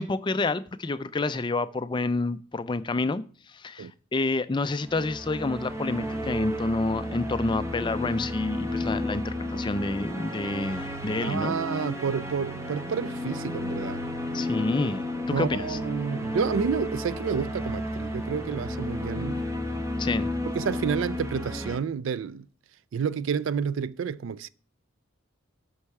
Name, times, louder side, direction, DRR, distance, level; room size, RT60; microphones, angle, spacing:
voice 1, 0.0-11.5 14.3-15.8 20.0-20.3, left 3 dB, 20° left, 0.4 m, -29 dB
sound 1, 4.8-21.8, left 1 dB, 15° right, 0.8 m, -32 dB
voice 2, 11.2-14.0 15.3-19.4 20.5-22.5 22.9-24.5, right 6 dB, 65° right, 0.3 m, -30 dB
8.5 x 5.5 x 4.7 m
head